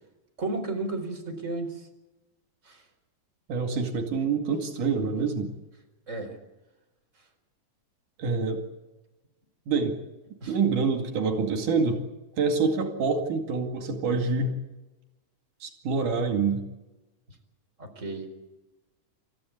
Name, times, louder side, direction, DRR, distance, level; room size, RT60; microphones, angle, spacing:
voice 1, 0.4-1.9 2.6-2.8 6.1-6.4 10.4-10.6 17.8-18.3, right 2 dB, 20° right, 4 dB, 4.6 m, -33 dB
voice 2, 3.5-5.5 8.2-8.6 9.7-9.9 10.5-12.0 12.4-14.6 15.6-16.6, right 4 dB, 90° right, 4 dB, 3.8 m, -26 dB
29.5 x 14.5 x 8.4 m, 1.0 s
omnidirectional pair, 3.5 m